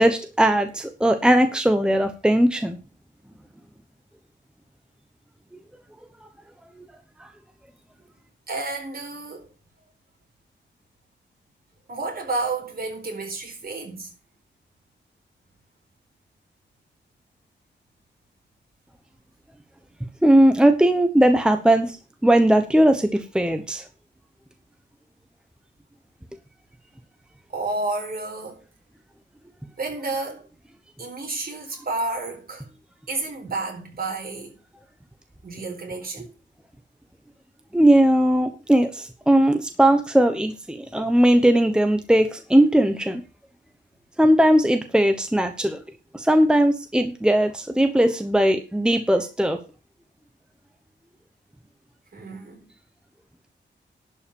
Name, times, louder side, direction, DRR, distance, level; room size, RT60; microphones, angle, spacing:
voice 1, 0.0-2.8 5.5-5.6 6.8-6.9 20.2-22.0 22.2-23.9 37.7-43.2 44.2-45.8 46.1-49.6, right 1 dB, 5° right, 1.0 m, -19 dB
voice 2, 8.5-9.5 11.9-14.1 27.5-28.6 29.8-30.4 31.0-32.7 33.1-34.5 35.4-36.2 52.1-52.6, right 3 dB, 50° right, 4.4 m, -30 dB
11.5 x 5.6 x 7.0 m
wide cardioid pair, 125°, 19 cm